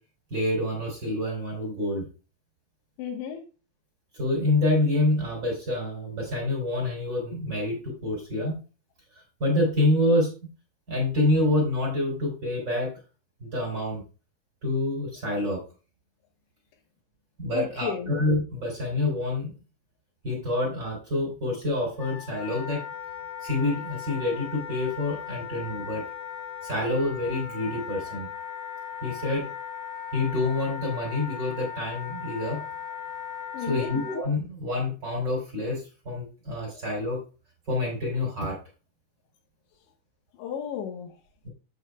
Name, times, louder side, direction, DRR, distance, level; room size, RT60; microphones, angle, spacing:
voice 1, 0.3-2.0 4.1-8.6 9.1-10.3 10.9-12.9 13.4-14.0 14.6-15.6 17.4-19.5 20.2-22.8 23.4-26.0 26.6-28.3 29.0-29.5 30.1-32.6 33.7-37.2 37.7-38.6 41.4-41.5, left 2 dB, 30° right, 2.8 m, -27 dB
voice 2, 3.0-3.4 17.5-18.1 32.5-32.6 33.5-34.0 36.7-36.8 40.3-41.1, left 8 dB, 80° left, 3.5 m, -33 dB
Wind instrument woodwind instrument, 22.0-34.2, left 8 dB, 65° left, 2.6 m, -38 dB
8.1 x 7.9 x 2.2 m
omnidirectional pair, 5.2 m